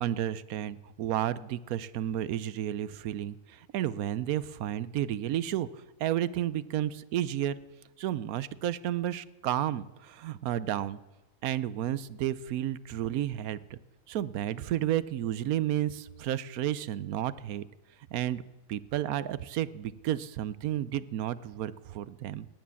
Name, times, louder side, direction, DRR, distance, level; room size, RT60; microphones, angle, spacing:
voice 1, 0.0-5.7 6.0-7.6 8.0-11.0 11.4-13.8 14.1-17.7 18.1-18.4 18.7-22.5, right 12 dB, 80° right, 17 dB, 1.1 m, -32 dB
18.0 x 9.8 x 7.0 m, 1.1 s
omnidirectional pair, 1.5 m